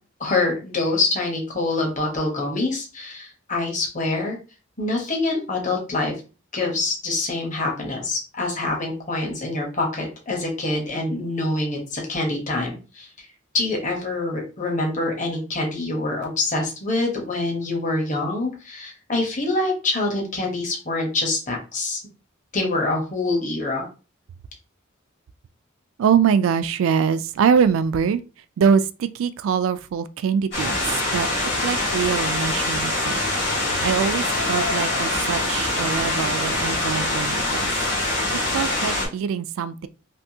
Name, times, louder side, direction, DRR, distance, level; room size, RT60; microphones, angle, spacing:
voice 1, 0.2-4.4 4.8-6.2 6.5-13.1 13.5-22.0 22.5-23.9, left 2 dB, 40° left, 1.0 m, -25 dB
voice 2, 26.0-28.2 28.6-31.3 31.6-33.2 33.5-37.7 38.3-39.9, right 7 dB, 85° right, 0.3 m, -23 dB
sound 1, 30.5-39.1, left 2 dB, 55° left, 1.8 m, -24 dB
3.4 x 2.6 x 2.7 m
head